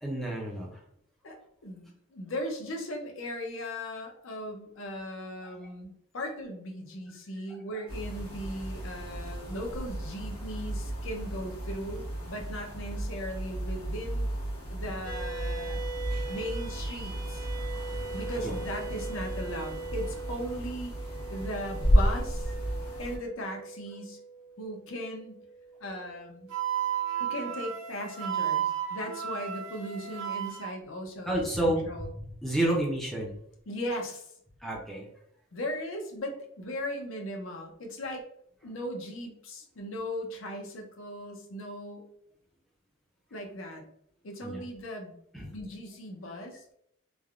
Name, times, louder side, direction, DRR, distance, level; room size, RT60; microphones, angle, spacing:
voice 1, 0.0-0.7 5.4-5.7 15.7-15.8 16.1-16.3 18.4-18.5 31.3-32.1 32.4-33.4 34.6-35.1 44.4-44.6 45.3-45.5, right 1 dB, ahead, -3 dB, 0.5 m, -30 dB
voice 2, 1.6-14.3 14.7-15.8 16.3-17.5 18.1-20.9 21.3-22.5 23.0-24.2 24.6-25.4 25.8-26.5 27.2-32.1 33.7-34.3 35.5-38.3 38.6-42.1 43.3-43.8 44.2-45.2 45.5-46.7, equal, 65° left, 2 dB, 0.6 m, -38 dB
sound 1, 7.9-23.2, equal, 90° left, 1.1 m, -32 dB
sound 2, 15.0-27.7, right 4 dB, 40° right, 0.8 m, -42 dB
Wind instrument woodwind instrument, 26.5-30.7, right 9 dB, 75° right, 0.9 m, -32 dB
3.3 x 2.2 x 2.4 m, 0.70 s
head